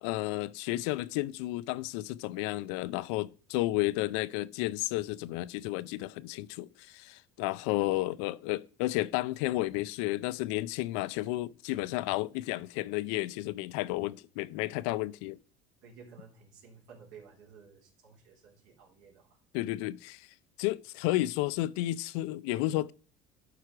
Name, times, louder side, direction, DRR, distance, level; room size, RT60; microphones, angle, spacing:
voice 1, 0.0-15.4 19.5-20.3 20.6-22.9, left 17 dB, 85° left, 0.5 m, -32 dB
voice 2, 15.8-19.4, right 6 dB, 80° right, 3.8 m, -54 dB
11.5 x 4.9 x 4.7 m
cardioid pair, 130°, 14 cm